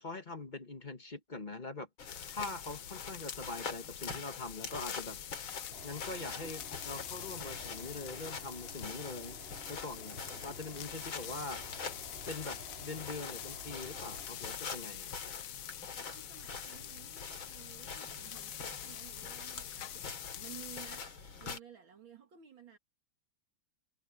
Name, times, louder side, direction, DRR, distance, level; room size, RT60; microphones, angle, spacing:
voice 1, 0.0-1.9 2.2-5.2 5.8-9.4 9.7-11.6 12.3-15.2, left 3 dB, 30° left, 1.0 m, -43 dB
sound 1, 2.0-21.0, left 11 dB, 90° left, 0.7 m, -46 dB
sound 2, 2.0-21.6, left 5 dB, 65° left, 3.3 m, -45 dB
sound 3, 5.7-14.3, right 1 dB, 25° right, 5.5 m, -52 dB
voice 2, 15.1-15.5 16.0-22.8, right 9 dB, 65° right, 2.7 m, -55 dB
omnidirectional pair, 2.4 m